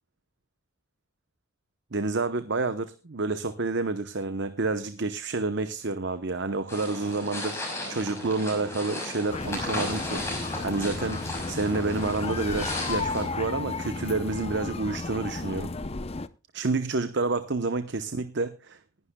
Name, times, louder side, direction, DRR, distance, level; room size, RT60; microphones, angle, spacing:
voice 1, 1.9-15.7 16.5-18.8, right 3 dB, 50° right, 0.9 m, -29 dB
sound 1, 6.7-13.2, left 2 dB, 10° left, 5.8 m, -35 dB
sound 2, 9.3-16.3, left 3 dB, 25° left, 0.6 m, -33 dB
20.0 x 11.0 x 2.3 m
head